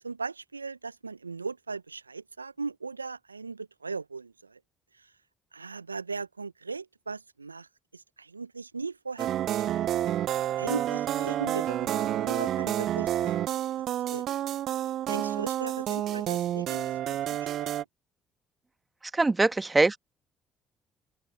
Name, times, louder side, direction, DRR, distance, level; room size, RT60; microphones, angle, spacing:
voice 1, 0.0-4.6 5.0-5.1 5.5-10.0 10.6-13.5 14.1-14.2 15.1-17.7, right 4 dB, 90° right, 1.4 m, -38 dB
sound 1, 9.2-17.8, right 12 dB, 55° right, 0.9 m, -29 dB
voice 2, 19.1-20.0, right 3 dB, 20° right, 1.5 m, -22 dB
open air
figure-of-eight pair, 50°, 0 cm